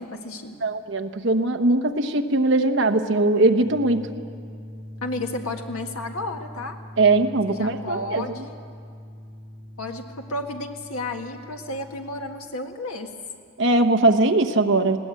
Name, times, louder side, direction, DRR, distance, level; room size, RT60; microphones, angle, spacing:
voice 1, 0.0-0.6 5.0-6.8 7.5-8.5 9.8-13.1, left 2 dB, 80° left, 4 dB, 1.7 m, -32 dB
voice 2, 0.6-4.0 7.0-8.2 13.6-15.0, right 2 dB, 55° right, 6 dB, 1.0 m, -20 dB
sound 1, 3.6-12.4, left 1 dB, 55° left, 2.6 m, -42 dB
20.5 x 17.0 x 8.3 m, 2.2 s
head